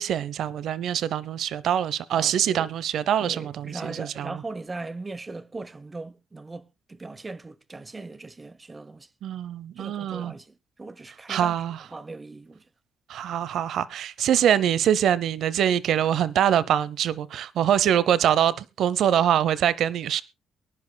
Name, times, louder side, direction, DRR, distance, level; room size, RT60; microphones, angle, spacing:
voice 1, 0.0-4.4 9.2-10.3 11.3-11.8 13.1-20.2, right 10 dB, 75° right, 0.7 m, -24 dB
voice 2, 2.1-2.7 3.2-9.1 9.8-11.5 11.9-12.7, right 3 dB, 25° right, 0.8 m, -39 dB
23.0 x 10.5 x 2.2 m
cardioid pair, 90°, 0 cm